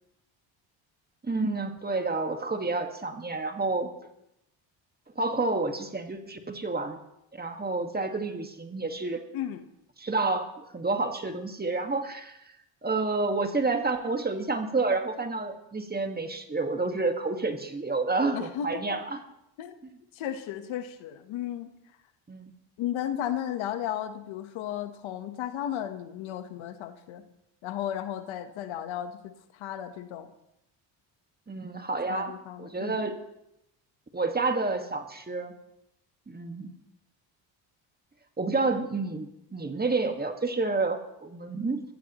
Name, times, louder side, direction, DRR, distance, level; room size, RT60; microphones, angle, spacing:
voice 1, 1.2-3.9 5.1-7.0 7.3-9.2 10.0-12.4 12.8-19.2 22.3-22.5 31.5-33.1 34.1-35.5 36.3-36.7 38.4-41.8, right 3 dB, 20° right, 6 dB, 1.7 m, -29 dB
voice 2, 9.3-9.6 18.3-18.9 19.6-19.7 20.1-21.7 22.8-27.3 27.6-30.3 32.1-33.0, left 10 dB, 80° left, 9 dB, 1.3 m, -34 dB
23.5 x 15.0 x 3.0 m, 0.82 s
cardioid pair, 80°, 46 cm